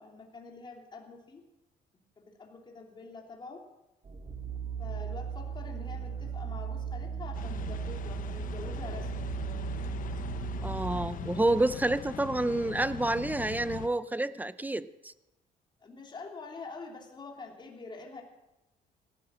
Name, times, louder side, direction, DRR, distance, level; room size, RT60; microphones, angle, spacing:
voice 1, 0.0-1.4 2.2-3.6 4.8-9.3 15.8-18.2, left 3 dB, 25° left, 1 dB, 3.0 m, -45 dB
sound 1, 4.0-11.1, right 7 dB, 35° right, 2.0 m, -37 dB
sound 2, 7.3-13.9, left 10 dB, 50° left, 1.0 m, -41 dB
voice 2, 10.6-15.1, right 2 dB, 10° right, 15 dB, 0.6 m, -29 dB
17.5 x 12.5 x 6.2 m, 0.96 s
cardioid pair, 110°, 17 cm